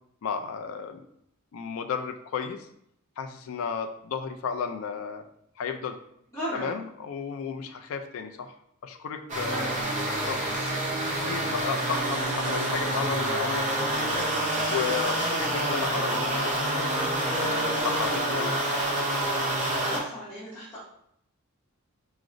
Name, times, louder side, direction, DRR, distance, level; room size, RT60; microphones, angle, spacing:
voice 1, 0.2-1.0 1.5-2.7 3.2-5.2 5.6-6.0 6.5-8.5 8.8-9.7 10.2-10.4 11.2-14.3 14.7-16.9 17.3-18.6, left 6 dB, 65° left, 5 dB, 0.3 m, -33 dB
voice 2, 6.3-6.7 9.4-10.7 19.8-20.8, equal, 15° left, -12 dB, 1.0 m, -37 dB
sound 1, 9.3-20.0, right 1 dB, 35° right, 0.7 m, -27 dB
4.7 x 2.0 x 2.5 m, 0.72 s
head